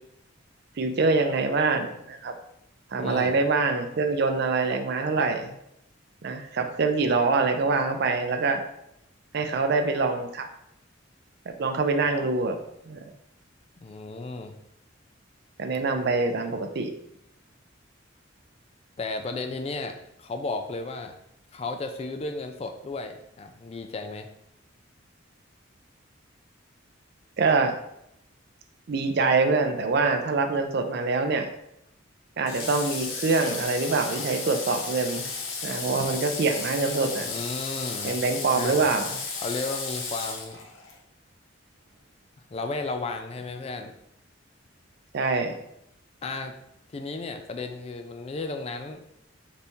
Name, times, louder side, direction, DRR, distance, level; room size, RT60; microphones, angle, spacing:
voice 1, 0.8-2.3 2.9-5.5 6.2-8.6 9.3-10.5 11.5-12.6 12.9-13.0 15.6-16.9 27.4-27.8 28.9-31.5 32.4-35.3 35.6-37.3 38.0-39.1 45.1-45.6, right 3 dB, 55° right, 7 dB, 0.4 m, -25 dB
voice 2, 3.0-3.4 13.8-14.6 19.0-21.1 21.5-24.3 37.2-38.2 38.5-38.8 39.4-40.6 42.5-43.9 46.2-46.5 46.9-49.0, left 3 dB, 30° left, 6 dB, 0.3 m, -34 dB
Water / Water tap faucet, 32.5-41.0, left 4 dB, 85° left, 0.7 m, -34 dB
4.1 x 2.7 x 3.5 m, 0.77 s
head